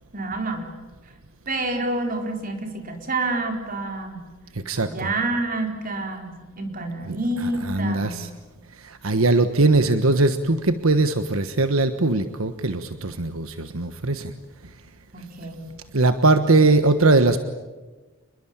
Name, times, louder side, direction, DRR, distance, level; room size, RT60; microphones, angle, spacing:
voice 1, 0.1-0.7 1.5-4.2 4.8-8.2 15.1-15.6, right 2 dB, 40° right, 3 dB, 4.5 m, -28 dB
voice 2, 4.6-5.1 7.0-8.3 8.8-14.3 15.9-17.4, right 2 dB, 85° right, 9 dB, 1.4 m, -20 dB
29.5 x 21.5 x 8.9 m, 1.2 s
head